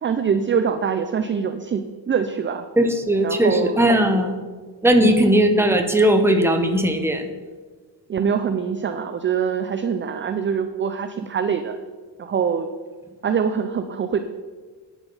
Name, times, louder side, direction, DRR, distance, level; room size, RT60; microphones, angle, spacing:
voice 1, 0.0-2.6 3.2-3.8 5.0-5.2 8.1-11.8 12.2-12.7 13.2-14.2, right 7 dB, 30° right, 9 dB, 0.4 m, -24 dB
voice 2, 2.8-4.4 4.8-7.3, right 1 dB, 5° right, 5 dB, 0.8 m, -18 dB
8.9 x 7.1 x 5.4 m, 1.4 s
wide cardioid pair, 145°, 43 cm